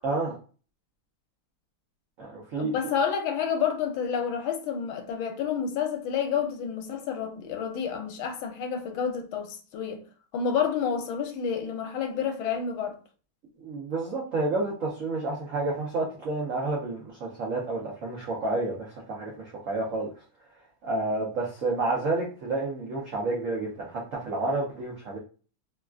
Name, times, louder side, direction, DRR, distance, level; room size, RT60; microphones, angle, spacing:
voice 1, 0.0-0.4 2.2-2.7 13.6-20.1 20.8-25.2, right 2 dB, 85° right, 0.7 m, -30 dB
voice 2, 2.6-10.0 10.3-13.0, left 7 dB, 80° left, 1.4 m, -29 dB
3.4 x 2.3 x 2.3 m
omnidirectional pair, 2.3 m